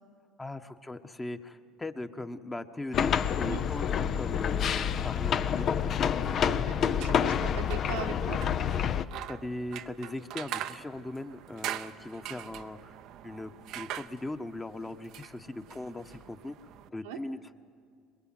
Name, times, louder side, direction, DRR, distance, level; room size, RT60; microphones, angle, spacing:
voice 1, 0.4-3.9 4.1-5.7 6.4-6.8 9.3-13.0 13.2-16.6 16.9-17.4, left 2 dB, 15° left, 7 dB, 1.3 m, -39 dB
sound 1, 2.9-9.0, left 8 dB, 50° left, 0.8 m, -28 dB
voice 2, 6.3-8.4 17.0-17.2, right 8 dB, 85° right, 3 dB, 1.5 m, -40 dB
sound 2, 6.8-16.9, right 12 dB, 65° right, 0.7 m, -43 dB
22.5 x 21.5 x 7.8 m, 2.2 s
hypercardioid pair, 75°, 0 cm